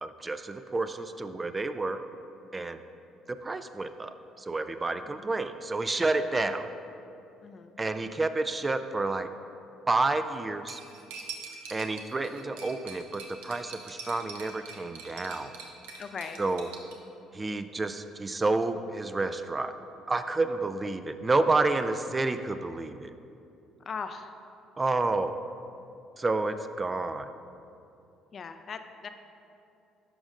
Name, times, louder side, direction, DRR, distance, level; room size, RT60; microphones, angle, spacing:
voice 1, 0.0-2.0 2.5-2.8 3.3-6.7 7.8-9.3 9.9-10.8 11.7-15.5 16.4-16.7 17.3-19.7 20.1-23.1 24.8-25.4 26.2-27.3, right 3 dB, 25° right, 10 dB, 0.3 m, -29 dB
voice 2, 7.4-7.8 16.0-16.4 23.8-24.3 28.3-29.1, left 5 dB, 45° left, 8 dB, 0.4 m, -39 dB
Cutlery silverware, 10.7-16.9, right 4 dB, 90° right, 0.7 m, -44 dB
10.5 x 5.1 x 2.5 m, 2.6 s
supercardioid pair, 70°, 0 cm